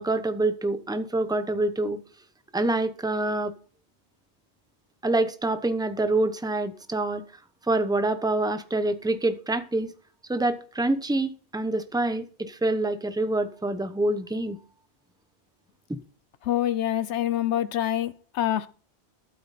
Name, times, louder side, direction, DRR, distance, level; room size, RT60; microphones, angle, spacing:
voice 1, 0.0-2.0 2.5-3.5 5.0-7.2 7.7-9.9 10.3-14.6 15.9-16.0, right 2 dB, 5° right, 0.8 m, -26 dB
voice 2, 16.4-18.7, left 11 dB, 90° left, 1.1 m, -26 dB
12.5 x 8.7 x 4.2 m
omnidirectional pair, 1.1 m